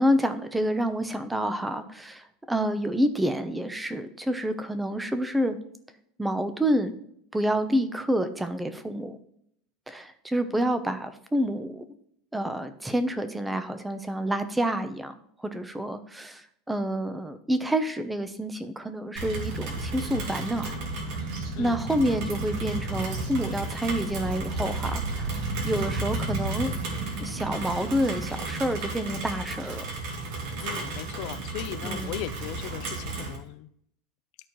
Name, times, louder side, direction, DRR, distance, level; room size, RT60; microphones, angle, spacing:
voice 1, 0.0-5.6 6.2-6.9 7.3-9.2 9.9-11.8 12.3-15.1 15.4-20.8 21.0-21.3 21.6-26.7 27.2-29.8 31.8-32.2, equal, 5° right, 9 dB, 0.7 m, -28 dB
Rain, 19.2-33.4, right 2 dB, 60° right, 2.4 m, -32 dB
voice 2, 30.6-33.7, left 13 dB, 60° left, 12 dB, 0.6 m, -38 dB
12.5 x 4.4 x 3.1 m, 0.68 s
supercardioid pair, 140°, 0 cm